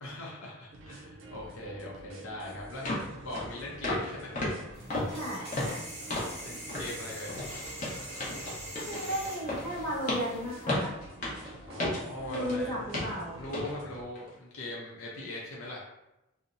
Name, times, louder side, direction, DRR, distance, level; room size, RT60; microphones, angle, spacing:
voice 1, 0.0-4.3 6.4-7.4 11.7-12.9 13.4-15.8, left 1 dB, 75° left, -4 dB, 0.6 m, -41 dB
sound 1, 0.7-14.1, right 2 dB, 60° right, 0.4 m, -49 dB
sound 2, 2.2-2.3 2.9-3.1 3.3-3.5 3.8-4.1 4.4-6.4 6.7-6.9 7.3-12.6 12.9-13.2 13.5-13.7 14.2-14.3, left 1 dB, 40° left, 0.6 m, -34 dB
sound 3, 4.7-10.7, right 1 dB, 30° right, 0.7 m, -44 dB
voice 2, 5.1-5.8 8.7-10.9 12.2-13.4, equal, 15° left, -9 dB, 0.9 m, -35 dB
2.8 x 2.0 x 2.5 m, 0.91 s
head